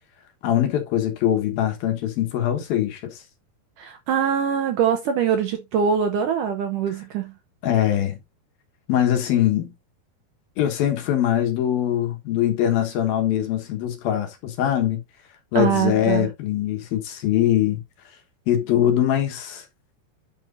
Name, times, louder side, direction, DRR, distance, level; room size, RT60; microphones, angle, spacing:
voice 1, 0.4-3.2 7.6-8.2 8.9-9.7 10.6-15.0 15.5-17.8 18.5-19.6, left 11 dB, 70° left, 3.1 m, -22 dB
voice 2, 3.8-7.3 15.6-16.3, right 7 dB, 70° right, 2.1 m, -23 dB
9.8 x 6.0 x 2.6 m
omnidirectional pair, 4.6 m